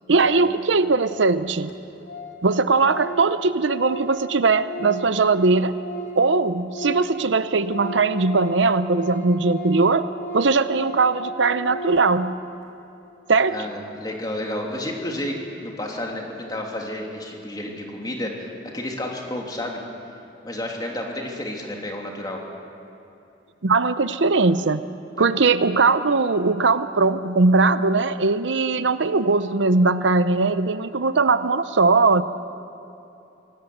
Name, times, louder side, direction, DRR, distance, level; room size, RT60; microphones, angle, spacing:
voice 1, 0.1-1.7 2.4-5.7 6.2-10.0 10.3-12.4 13.3-13.6 23.6-24.8 25.2-32.2, right 3 dB, 80° right, 12 dB, 0.7 m, -20 dB
Organ, 1.1-1.2 1.4-1.5 1.7-1.8 2.0-2.4 2.7-6.3 6.6-12.2, right 1 dB, 75° left, 4.5 m, -36 dB
voice 2, 13.5-19.8 20.4-22.4 25.2-25.3, left 1 dB, 20° left, 0 dB, 3.0 m, -31 dB
25.0 x 18.0 x 8.0 m, 2.8 s
head